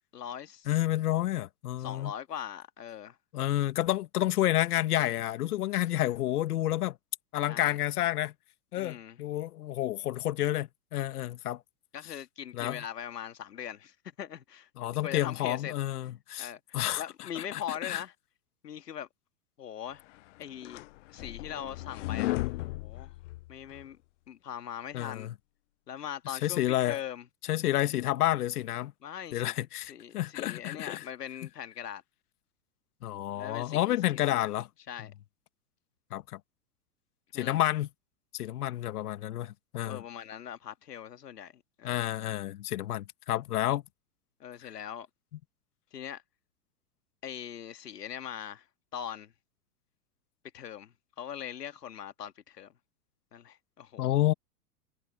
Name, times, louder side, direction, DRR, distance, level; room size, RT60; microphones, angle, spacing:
voice 1, 0.1-0.7 1.8-3.2 7.5-7.8 8.8-9.2 11.9-14.7 15.0-15.7 16.4-18.1 18.6-19.1 19.6-20.0 20.4-20.8 21.1-23.1 23.5-24.0 24.3-25.3 25.9-27.3 29.0-29.6 29.9-32.0 33.3-34.6 34.9-35.1 37.3-37.6 39.8-42.0 44.4-45.1 45.9-46.2 47.2-48.7 48.9-49.3 50.5-52.7 53.3-54.0, left 9 dB, 85° left, 2.2 m, -41 dB
voice 2, 0.7-2.1 3.3-6.9 7.3-8.3 8.7-11.6 12.5-12.8 14.8-16.5 16.7-17.0 17.3-18.0 24.9-25.3 26.4-27.0 27.5-28.9 29.3-31.0 33.0-34.7 36.1-36.4 37.3-37.9 38.3-40.0 41.8-43.8 54.0-54.3, left 14 dB, 70° left, 1.5 m, -30 dB
sound 1, 20.2-23.8, left 18 dB, 50° left, 0.6 m, -35 dB
hypercardioid pair, 120°, 46 cm